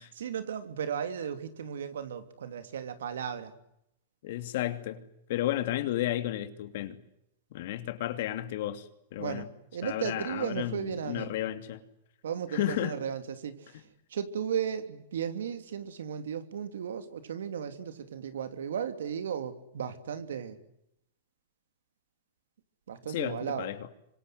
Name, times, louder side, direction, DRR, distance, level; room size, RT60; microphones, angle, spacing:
voice 1, 0.1-3.5 9.2-11.3 12.2-13.8 14.1-20.6 22.9-23.7, right 8 dB, 85° right, 3.0 m, -35 dB
voice 2, 4.2-5.0 5.3-7.0 7.5-9.5 9.8-11.8 12.5-13.0 23.1-23.8, left 13 dB, 65° left, 2.8 m, -33 dB
26.0 x 25.5 x 7.8 m
hypercardioid pair, 130°, 0 cm